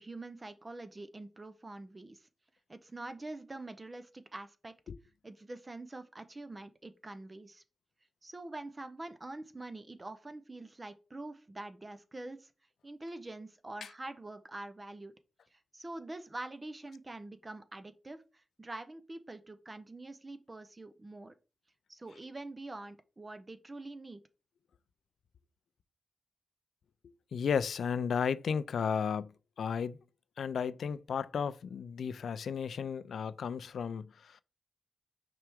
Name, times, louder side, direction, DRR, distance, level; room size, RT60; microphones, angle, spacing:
voice 1, 0.0-2.3 2.7-4.7 5.2-7.6 8.2-12.5 12.8-15.1 15.5-21.3 21.9-24.2, right 2 dB, 25° right, 0.7 m, -45 dB
voice 2, 27.3-29.3 29.6-30.0 30.4-34.4, left 6 dB, 85° left, 0.4 m, -34 dB
5.8 x 4.6 x 3.6 m
wide cardioid pair, 105°, 0 cm